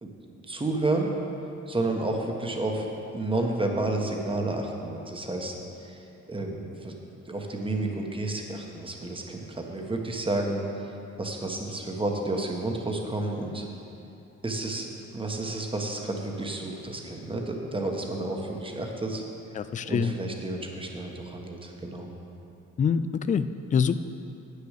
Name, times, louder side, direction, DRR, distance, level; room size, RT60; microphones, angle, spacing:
voice 1, 0.5-1.1 1.7-2.8 3.1-5.6 5.8-6.0 6.3-6.9 7.3-10.6 11.2-13.6 14.4-14.9 15.1-19.2 19.8-22.1, right 2 dB, 15° right, 1 dB, 1.3 m, -30 dB
voice 2, 19.5-20.1 22.8-23.0 23.3-24.0, left 6 dB, 25° left, 12 dB, 0.3 m, -25 dB
8.8 x 6.6 x 6.6 m, 2.8 s
cardioid pair, 90°, 30 cm